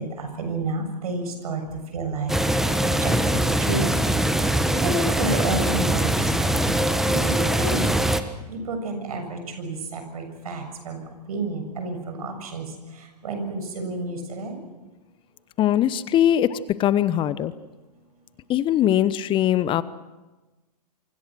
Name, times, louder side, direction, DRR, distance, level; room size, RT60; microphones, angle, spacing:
voice 1, 0.0-1.6 1.9-2.3 2.8-3.9 4.7-6.8 7.0-7.9 8.5-11.0 11.3-12.7 13.2-14.6, right 3 dB, 65° right, 6 dB, 7.2 m, -30 dB
sound 1, 2.3-8.2, right 1 dB, ahead, 1.4 m, -22 dB
voice 2, 15.6-17.5 18.5-19.8, left 11 dB, 25° left, 16 dB, 1.0 m, -21 dB
28.5 x 25.0 x 6.2 m, 1.1 s
figure-of-eight pair, 110°, 21 cm